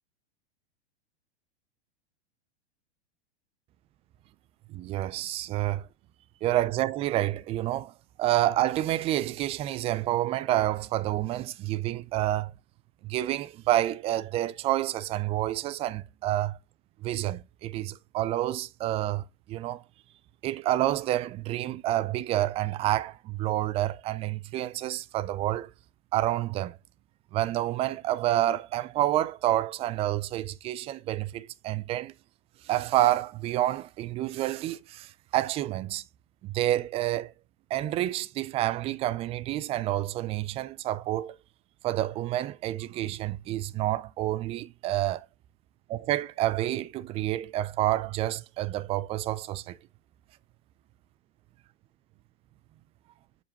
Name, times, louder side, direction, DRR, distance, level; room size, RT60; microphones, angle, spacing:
voice 1, 4.7-5.9 6.4-7.9 8.2-12.5 13.0-16.6 17.0-19.8 20.4-25.7 26.1-26.8 27.3-32.1 32.6-36.0 36.4-37.3 37.7-41.3 41.8-45.3 45.9-49.8, right 14 dB, 20° right, 0.3 m, -28 dB
7.1 x 5.3 x 2.9 m
hypercardioid pair, 130°, 33 cm